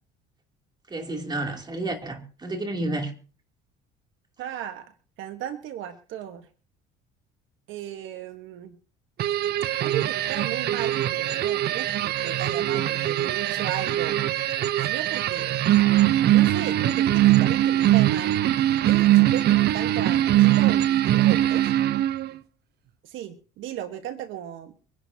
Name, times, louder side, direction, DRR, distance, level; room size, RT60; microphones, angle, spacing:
voice 1, 0.9-3.1 12.7-12.8, right 2 dB, 20° right, 2.8 m, -30 dB
voice 2, 4.4-4.9 5.2-6.5 7.7-8.8 9.8-14.2 14.8-15.5 16.3-18.4 18.8-21.7 23.0-24.7, right 10 dB, 70° right, 1.3 m, -35 dB
sound 1, 9.2-22.4, right 13 dB, 50° right, 0.7 m, -22 dB
24.0 x 11.0 x 2.8 m
cardioid pair, 120°, 21 cm